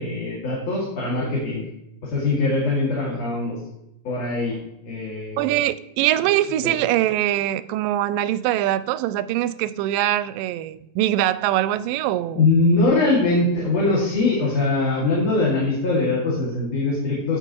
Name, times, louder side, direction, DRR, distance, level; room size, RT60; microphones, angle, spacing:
voice 1, 0.0-1.6 2.0-3.6 4.0-4.5 4.9-5.5 12.3-17.4, left 2 dB, 55° left, -5 dB, 3.2 m, -22 dB
voice 2, 5.4-12.5, right 13 dB, 90° right, 15 dB, 2.2 m, -23 dB
16.0 x 5.9 x 2.9 m, 0.86 s
omnidirectional pair, 3.8 m